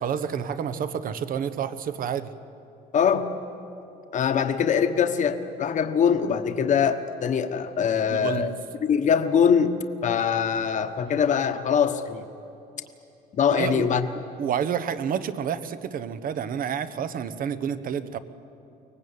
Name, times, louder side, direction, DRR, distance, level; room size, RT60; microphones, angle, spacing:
voice 1, 0.0-2.3 8.1-8.5 13.5-13.9 14.4-18.2, right 8 dB, 55° right, 13 dB, 1.1 m, -29 dB
voice 2, 2.9-3.3 4.1-8.5 8.8-9.7 10.0-12.3 13.3-14.0, left 7 dB, 45° left, 8 dB, 1.2 m, -23 dB
24.0 x 19.0 x 8.7 m, 2.8 s
cardioid pair, 110°, 17 cm